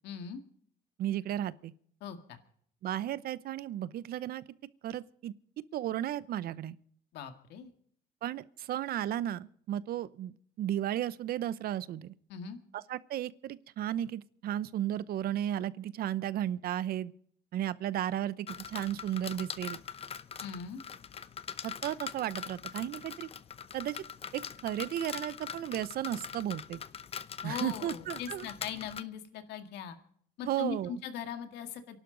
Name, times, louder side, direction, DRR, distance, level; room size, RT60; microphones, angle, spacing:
voice 1, 0.0-0.4 2.0-2.4 7.1-7.7 12.3-12.6 20.4-20.8 27.4-30.0 30.4-32.0, left 7 dB, 80° left, 1.9 m, -40 dB
voice 2, 1.0-1.7 2.8-4.4 4.8-5.3 5.7-6.8 8.2-12.1 12.7-17.1 17.5-19.8 21.6-23.3 23.7-24.0 24.3-26.8 27.4-28.5 30.5-30.9, right 12 dB, 65° right, 0.8 m, -34 dB
sound 1, 18.5-29.0, left 7 dB, 35° left, 0.8 m, -43 dB
28.5 x 12.0 x 3.9 m
cardioid pair, 110°, 17 cm